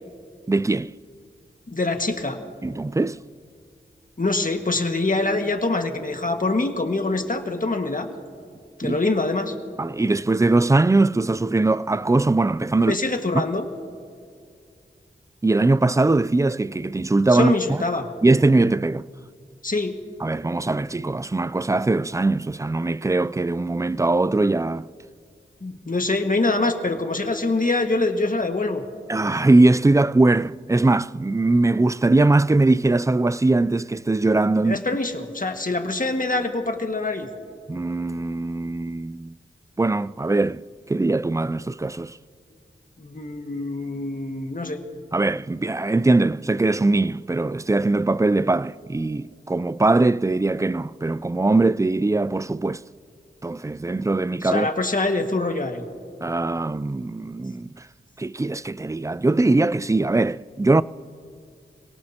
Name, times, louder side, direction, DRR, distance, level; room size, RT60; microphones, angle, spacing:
voice 1, 0.5-0.9 2.6-3.2 8.8-9.0 9.8-13.0 13.3-13.4 15.4-17.8 18.2-19.1 20.2-24.9 29.1-34.8 37.7-39.3 39.8-40.6 40.9-42.2 45.1-52.8 53.4-54.7 56.2-57.7 58.2-60.8, right 2 dB, 15° right, 0.4 m, -21 dB
voice 2, 1.7-2.4 4.2-8.1 8.8-9.5 12.8-13.7 17.3-18.1 19.6-20.0 25.6-28.8 34.6-37.3 43.0-44.8 54.4-55.9, left 2 dB, 40° left, 1.7 m, -24 dB
27.0 x 18.0 x 2.9 m
cardioid pair, 45°, 21 cm